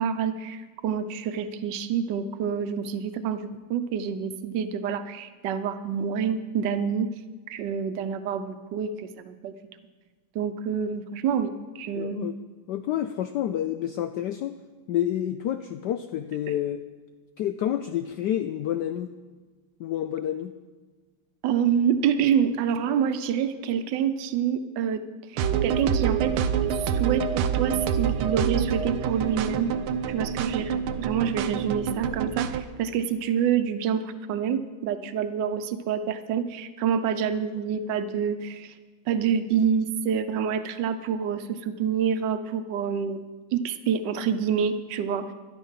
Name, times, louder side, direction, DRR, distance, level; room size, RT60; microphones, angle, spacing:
voice 1, 0.0-7.1 7.5-9.5 10.3-12.3 21.4-25.0 25.3-26.3 26.6-29.7 30.1-38.7 39.1-43.2 43.5-45.3, right 7 dB, 65° right, 10 dB, 1.3 m, -27 dB
voice 2, 12.0-12.4 12.7-14.5 14.9-16.8 17.4-19.1 19.8-20.5, left 11 dB, 80° left, 9 dB, 0.9 m, -29 dB
sound 1, 25.4-32.6, right 8 dB, 90° right, 1.6 m, -27 dB
13.0 x 11.5 x 5.7 m, 1.4 s
omnidirectional pair, 2.3 m